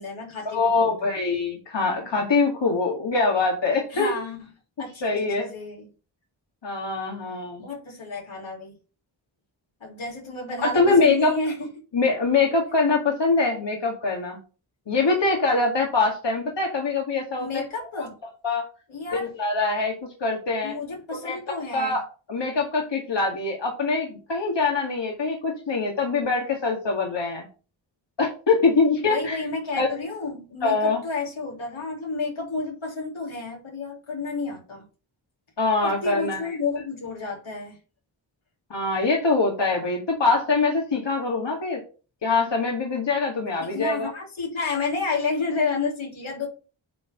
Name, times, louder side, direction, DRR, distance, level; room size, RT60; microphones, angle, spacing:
voice 1, 0.0-1.1 3.9-4.5 4.8-5.9 7.6-8.7 9.8-11.7 17.4-18.1 18.9-19.3 20.6-22.0 29.0-34.8 35.8-37.8 43.6-46.5, left 4 dB, 80° left, -2 dB, 3.4 m, -30 dB
voice 2, 0.5-4.1 5.0-5.5 6.6-7.6 10.6-11.3 11.9-14.4 14.9-17.5 17.9-18.1 18.4-18.7 19.1-19.9 20.2-20.7 21.1-21.4 21.7-22.0 22.3-27.5 28.2-29.4 29.8-29.9 30.6-31.0 35.6-36.6 38.7-41.8 42.2-44.1, left 3 dB, 65° left, 0 dB, 2.2 m, -23 dB
9.2 x 3.4 x 5.8 m, 0.35 s
cardioid pair, 45°, 47 cm